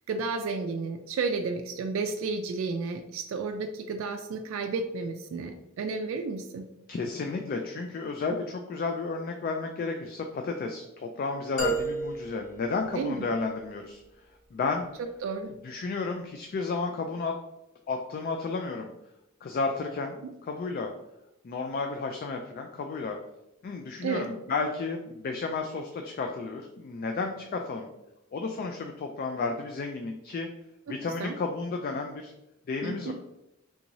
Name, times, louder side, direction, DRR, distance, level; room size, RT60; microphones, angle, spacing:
voice 1, 0.1-6.7 8.3-8.4 12.9-13.3 15.2-15.5 24.0-24.3 31.2-31.3 32.8-33.1, right 4 dB, 65° right, 5 dB, 0.3 m, -32 dB
voice 2, 6.9-14.0 14.5-14.8 15.6-17.3 17.9-18.9 19.4-20.9 21.4-23.2 23.6-27.9 28.3-30.5 30.9-32.3 32.7-33.1, left 4 dB, 45° left, 4 dB, 0.3 m, -32 dB
sound 1, 11.6-13.6, right 3 dB, 65° left, 1.0 m, -33 dB
3.5 x 2.6 x 3.0 m, 0.88 s
head